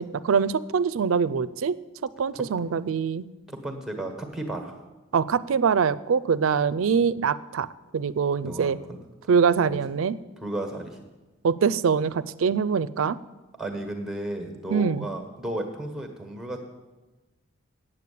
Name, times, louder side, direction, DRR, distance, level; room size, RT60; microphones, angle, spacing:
voice 1, 0.0-1.8 2.2-3.2 5.1-7.7 7.9-8.8 9.3-10.2 11.4-13.2 14.7-15.1, right 6 dB, 85° right, 16 dB, 0.4 m, -23 dB
voice 2, 3.5-4.7 6.9-7.0 8.4-9.0 9.7-9.8 10.4-11.0 13.6-16.6, right 1 dB, ahead, 4 dB, 1.4 m, -34 dB
8.7 x 8.4 x 8.5 m, 1.2 s
head